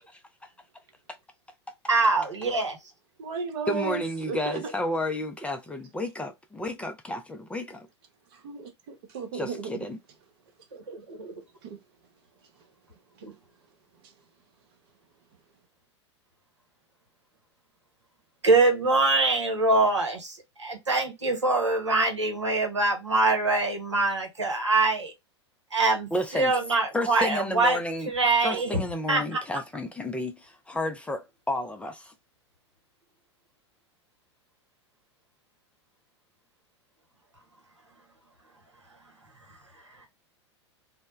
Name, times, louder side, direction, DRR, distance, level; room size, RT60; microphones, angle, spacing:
voice 1, 0.1-0.5 3.7-7.9 9.3-10.0 26.1-26.6 26.9-28.1 28.4-32.1, left 1 dB, 10° left, 0.4 m, -31 dB
voice 2, 1.9-2.8 10.7-11.3 13.2-13.3 18.4-25.1 25.7-27.8 28.1-28.8 29.1-29.4 39.5-39.6 39.8-40.1, right 3 dB, 85° right, 0.8 m, -24 dB
voice 3, 3.2-4.0 4.3-4.7 8.4-9.7 11.6-11.8, right 5 dB, 55° right, 0.8 m, -34 dB
2.1 x 2.1 x 2.9 m
figure-of-eight pair, 90°, 15 cm